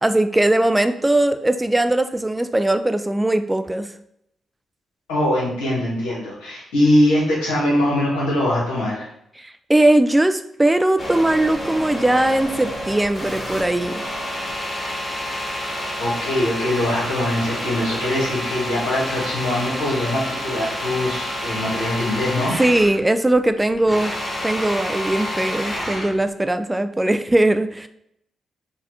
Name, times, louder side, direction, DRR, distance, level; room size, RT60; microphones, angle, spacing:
voice 1, 0.0-3.9 9.4-14.0 22.6-24.1 24.4-27.9, right 1 dB, 15° right, 9 dB, 0.3 m, -19 dB
voice 2, 5.1-9.1 15.7-22.5, left 1 dB, 90° left, -6 dB, 1.2 m, -22 dB
sound 1, 11.0-23.0 23.3-26.2, equal, 25° left, 1.3 m, -29 dB
4.2 x 2.3 x 2.8 m, 0.76 s
hypercardioid pair, 45°, 0 cm